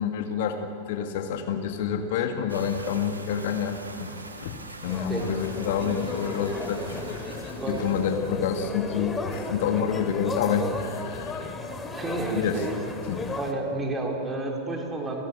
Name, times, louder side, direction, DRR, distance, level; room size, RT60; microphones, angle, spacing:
voice 1, 0.0-4.1 4.4-4.6 4.8-7.0 7.3-11.5 12.3-12.6 13.1-13.2, left 7 dB, 55° left, 6 dB, 1.7 m, -28 dB
sound 1, 2.5-9.6, right 2 dB, 80° right, 2.4 m, -43 dB
sound 2, 4.8-13.5, left 3 dB, 15° left, 2.5 m, -35 dB
voice 2, 7.6-7.9 11.9-12.7 13.4-15.2, right 2 dB, 15° right, 0 dB, 4.3 m, -30 dB
29.5 x 16.5 x 8.5 m, 2.9 s
figure-of-eight pair, 90°, 0 cm